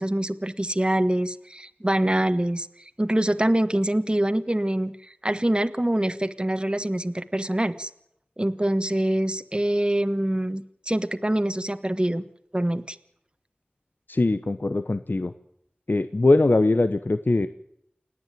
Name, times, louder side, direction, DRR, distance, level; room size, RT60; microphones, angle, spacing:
voice 1, 0.0-2.7 3.0-7.9 8.4-12.2 12.5-13.0, right 1 dB, 30° right, 10 dB, 1.4 m, -25 dB
voice 2, 14.1-15.3 15.9-17.5, left 2 dB, 70° left, 11 dB, 0.9 m, -21 dB
29.0 x 9.8 x 9.2 m, 0.75 s
wide cardioid pair, 40°, 3 cm